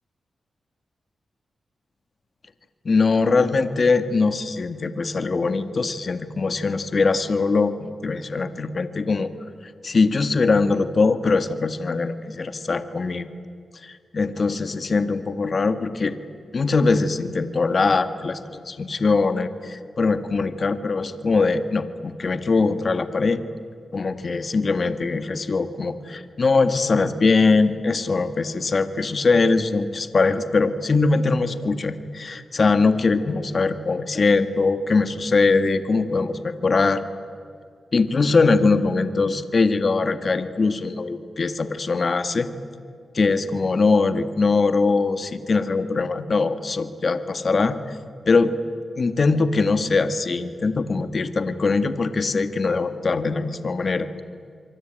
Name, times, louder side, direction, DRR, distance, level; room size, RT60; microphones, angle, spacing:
voice 1, 2.8-9.3 9.8-13.2 13.8-16.1 16.5-23.4 23.9-37.0 37.9-42.5 43.1-48.0 48.3-48.5 49.0-54.1, left 4 dB, 55° left, 10 dB, 1.8 m, -21 dB
27.0 x 24.0 x 9.2 m, 2.2 s
cardioid pair, 55°, 0 cm